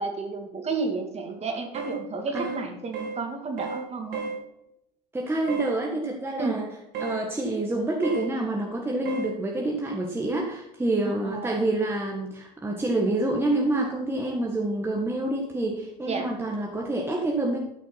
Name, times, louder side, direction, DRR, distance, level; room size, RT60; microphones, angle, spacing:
voice 1, 0.0-4.3 6.4-6.6 11.2-11.6 16.0-16.3, right 4 dB, 30° right, 3 dB, 2.5 m, -31 dB
sound 1, 1.7-2.0 2.4-2.6 2.9-3.2 3.6-3.8 4.1-4.4 5.5-5.7 6.9-7.2 8.0-8.3 9.0-9.3, right 5 dB, 55° right, 3.5 m, -32 dB
voice 2, 2.3-2.6 5.1-6.7 7.0-17.6, right 2 dB, 10° right, -1 dB, 1.7 m, -27 dB
12.5 x 6.1 x 5.7 m, 0.83 s
hypercardioid pair, 90°, 21 cm